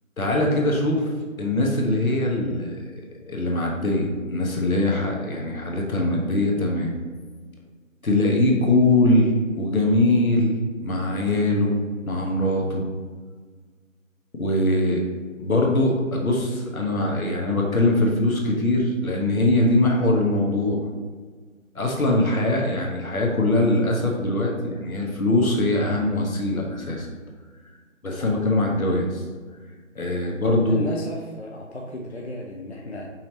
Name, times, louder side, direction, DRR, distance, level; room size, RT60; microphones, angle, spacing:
voice 1, 0.2-2.7 3.3-6.9 8.0-10.5 10.8-11.8 12.1-12.8 14.3-15.0 15.4-20.8 21.7-27.1 28.0-29.2 29.9-30.9, left 1 dB, 85° left, -1 dB, 1.3 m, -22 dB
voice 2, 30.5-33.1, left 1 dB, 55° left, -1 dB, 0.5 m, -35 dB
5.5 x 3.2 x 2.9 m, 1.5 s
figure-of-eight pair, 180°, 41 cm